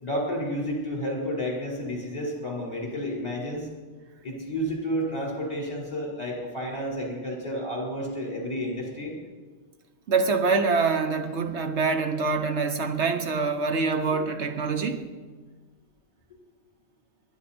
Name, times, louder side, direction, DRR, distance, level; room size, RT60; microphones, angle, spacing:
voice 1, 0.0-3.7 4.2-9.1, equal, 35° left, -3 dB, 4.6 m, -31 dB
voice 2, 10.1-15.1, right 4 dB, 75° right, 7 dB, 1.3 m, -25 dB
22.0 x 11.0 x 4.4 m, 1.4 s
omnidirectional pair, 1.2 m